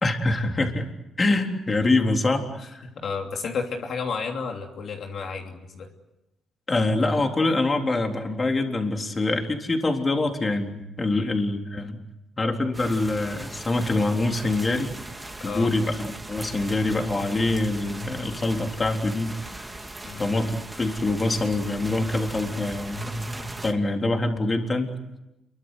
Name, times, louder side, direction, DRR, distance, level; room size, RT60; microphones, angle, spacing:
voice 1, 0.0-0.9 1.2-2.8 6.7-12.0 12.4-14.9 15.4-19.6 20.2-25.0, left 2 dB, 30° left, 3 dB, 3.8 m, -25 dB
voice 2, 2.6-5.9 11.1-11.3 15.4-15.7 20.0-20.3, left 5 dB, 60° left, 2 dB, 3.0 m, -32 dB
sound 1, 12.7-23.7, right 2 dB, 15° right, 2.6 m, -39 dB
28.5 x 23.5 x 8.2 m, 0.94 s
cardioid pair, 90°, 0 cm